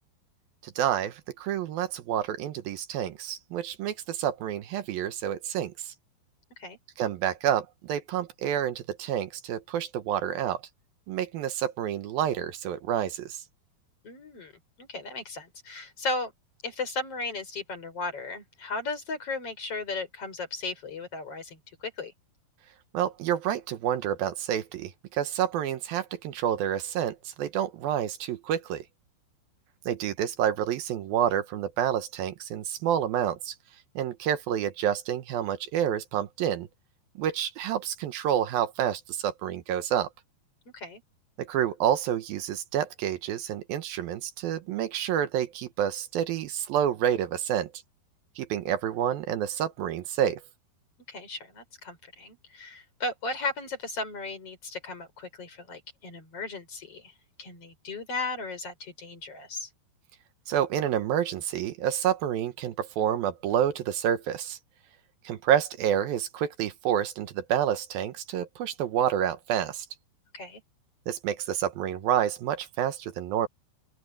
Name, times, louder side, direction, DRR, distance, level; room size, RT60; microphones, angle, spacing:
voice 1, 0.6-5.9 7.0-10.6 11.1-13.4 22.9-28.9 29.9-33.6 34.0-36.7 37.2-40.1 41.4-47.7 48.4-50.4 60.5-64.6 65.2-69.9 71.1-73.5, right 10 dB, 70° right, 2.7 m, -28 dB
voice 2, 14.0-14.5 14.8-16.3 16.6-22.1 40.7-41.0 51.1-59.7 70.3-70.6, left 3 dB, 35° left, 6.4 m, -36 dB
open air
omnidirectional pair, 4.6 m